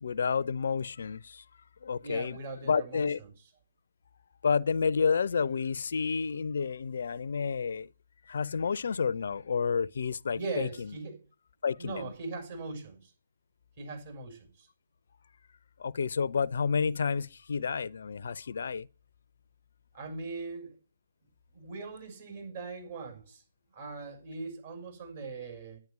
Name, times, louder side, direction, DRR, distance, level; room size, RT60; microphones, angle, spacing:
voice 1, 0.0-1.4 1.8-2.4 2.6-3.2 4.4-7.9 8.3-11.0 11.6-12.1 15.8-18.9, left 5 dB, 60° left, 0.5 m, -30 dB
voice 2, 2.0-3.1 10.3-11.2 11.8-13.1 13.8-14.7 19.9-20.7 21.5-23.4 23.7-25.8, right 3 dB, 50° right, 6.9 m, -40 dB
11.0 x 9.2 x 6.0 m
figure-of-eight pair, 135°, 0 cm